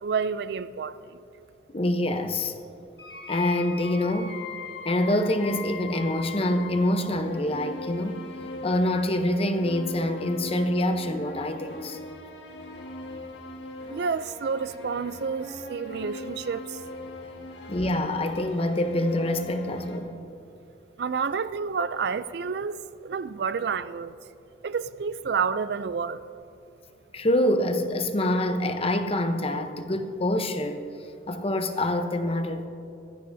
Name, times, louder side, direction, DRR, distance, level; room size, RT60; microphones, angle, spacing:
voice 1, 0.0-1.2 13.9-16.8 21.0-22.8 23.0-24.1 24.6-26.3, right 5 dB, 65° right, 0.4 m, -29 dB
voice 2, 1.7-2.5 3.3-4.4 4.8-8.2 8.6-12.0 17.7-20.1 27.1-30.8 31.3-32.7, left 1 dB, 35° left, 0.8 m, -26 dB
Path of a Warrior (Remake), 3.0-20.0, left 2 dB, 85° left, 1.9 m, -40 dB
19.0 x 15.0 x 2.7 m
head